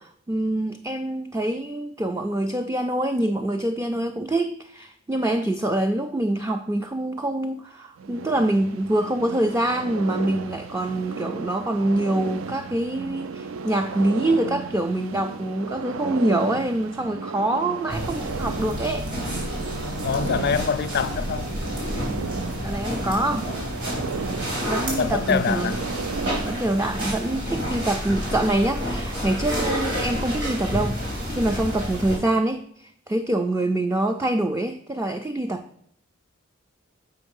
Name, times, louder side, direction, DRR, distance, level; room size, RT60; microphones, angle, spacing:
voice 1, 0.0-19.1 22.6-23.5 24.6-25.8 26.4-35.6, right 1 dB, 15° right, 0.3 m, -25 dB
sound 1, 8.0-26.9, right 5 dB, 80° right, 0.4 m, -34 dB
sound 2, 17.9-32.2, equal, 60° right, 3.5 m, -29 dB
voice 2, 20.0-21.5 24.9-25.8, left 6 dB, 55° left, 0.4 m, -25 dB
7.8 x 5.2 x 5.4 m
head